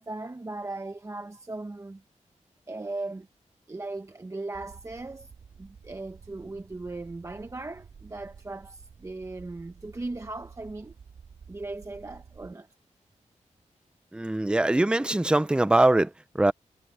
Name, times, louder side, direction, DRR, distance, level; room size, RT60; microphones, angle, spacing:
voice 1, 0.0-2.0 2.7-3.3 3.7-5.3 5.6-10.9 11.5-12.7 15.7-15.8, right 2 dB, 25° right, 0.9 m, -38 dB
sound 1, 4.5-12.5, right 6 dB, 75° right, 4.9 m, -51 dB
voice 2, 14.1-16.5, right 1 dB, 5° right, 0.5 m, -22 dB
wide cardioid pair, 140°, 13 cm